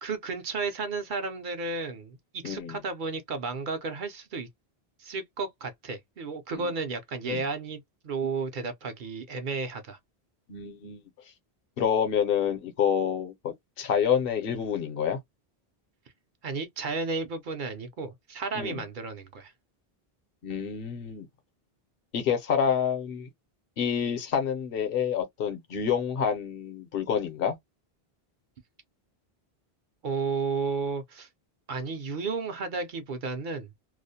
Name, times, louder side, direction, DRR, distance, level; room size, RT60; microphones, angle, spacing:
voice 1, 0.0-2.2 2.4-4.5 5.0-10.0 16.4-19.5 30.0-31.3 31.7-33.7, right 4 dB, 60° right, 0.6 m, -33 dB
voice 2, 2.4-2.8 6.5-6.7 7.3-7.4 10.5-11.0 11.8-15.2 18.5-18.8 20.4-21.3 22.1-23.3 23.8-27.5, left 7 dB, 70° left, 0.8 m, -28 dB
2.4 x 2.0 x 2.6 m
omnidirectional pair, 1.0 m